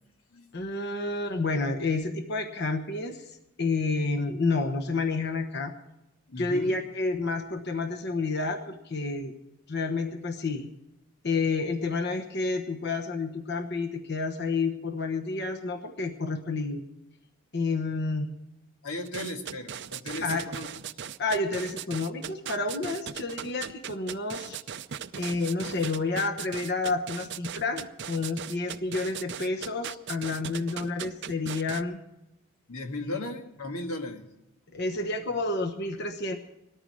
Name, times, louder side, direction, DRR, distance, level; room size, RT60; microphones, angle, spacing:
voice 1, 0.5-5.7 6.4-9.3 9.7-10.7 11.2-16.8 17.5-18.3 20.2-20.5 21.2-24.6 25.1-32.0 34.7-36.4, left 3 dB, 50° left, 4 dB, 1.1 m, -30 dB
voice 2, 6.3-6.7 18.8-20.7 32.7-34.3, left 2 dB, 85° left, 5 dB, 1.9 m, -36 dB
sound 1, 19.1-31.8, right 8 dB, 55° right, 0.6 m, -38 dB
19.5 x 14.0 x 4.8 m, 0.93 s
head